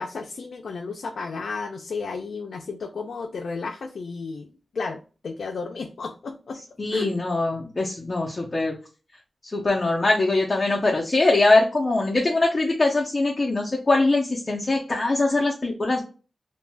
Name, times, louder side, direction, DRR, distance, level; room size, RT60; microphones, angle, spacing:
voice 1, 0.0-6.6 6.9-7.1, left 4 dB, 80° left, 2 dB, 0.3 m, -32 dB
voice 2, 6.8-8.7 9.5-16.0, left 2 dB, 30° left, -2 dB, 0.5 m, -22 dB
2.6 x 2.1 x 3.2 m, 0.34 s
wide cardioid pair, 135°, 0 cm